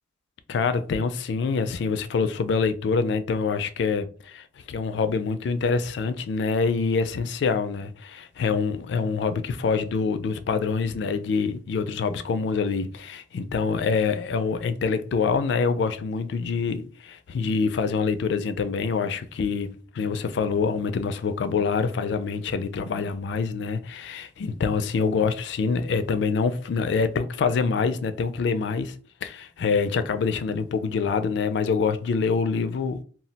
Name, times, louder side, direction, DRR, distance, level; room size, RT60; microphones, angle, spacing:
voice 1, 0.5-28.9 29.2-33.0, left 5 dB, 65° left, 0.3 m, -25 dB
2.3 x 2.1 x 3.9 m
head